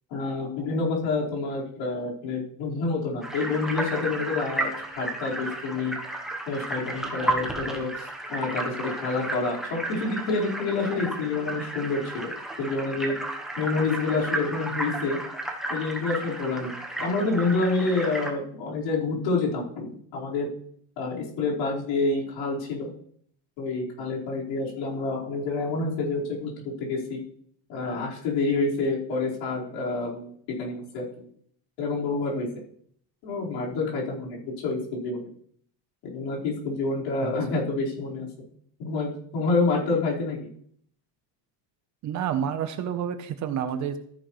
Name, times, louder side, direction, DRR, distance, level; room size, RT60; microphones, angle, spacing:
voice 1, 0.1-5.9 6.5-12.3 12.6-13.1 13.6-15.2 15.7-20.5 21.0-22.9 23.6-26.5 26.8-27.2 27.7-30.3 30.6-31.3 31.8-32.5 33.2-35.3 36.0-38.3 38.8-40.5, left 3 dB, 80° left, -5 dB, 4.8 m, -28 dB
sound 1, 3.2-18.3, right 1 dB, ahead, 1.0 m, -33 dB
voice 2, 42.0-44.0, right 8 dB, 40° right, 9 dB, 0.9 m, -29 dB
14.0 x 10.0 x 3.2 m, 0.63 s
cardioid pair, 180°, 45 cm